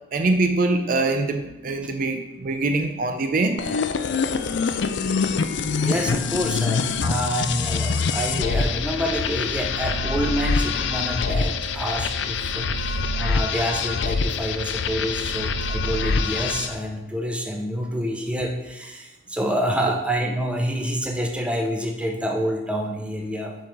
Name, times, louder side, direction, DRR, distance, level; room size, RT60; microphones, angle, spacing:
voice 1, 0.1-3.6, right 2 dB, 45° right, 6 dB, 0.5 m, -23 dB
sound 1, 3.6-16.8, left 4 dB, 75° left, 0.5 m, -25 dB
voice 2, 5.8-23.5, equal, 5° right, 2 dB, 0.7 m, -27 dB
5.4 x 4.7 x 5.9 m, 0.98 s
head